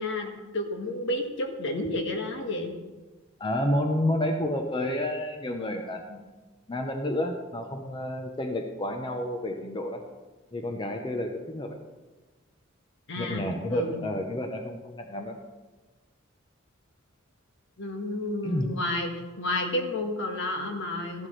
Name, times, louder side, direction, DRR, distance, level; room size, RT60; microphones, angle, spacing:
voice 1, 0.0-2.7 13.1-14.1 17.8-19.1 19.4-21.3, left 1 dB, 65° left, 3 dB, 1.7 m, -31 dB
voice 2, 3.4-6.2 6.7-10.0 10.5-11.8 13.2-15.4 18.4-18.7, left 1 dB, 25° left, 4 dB, 0.8 m, -30 dB
14.0 x 11.5 x 3.3 m, 1.2 s
head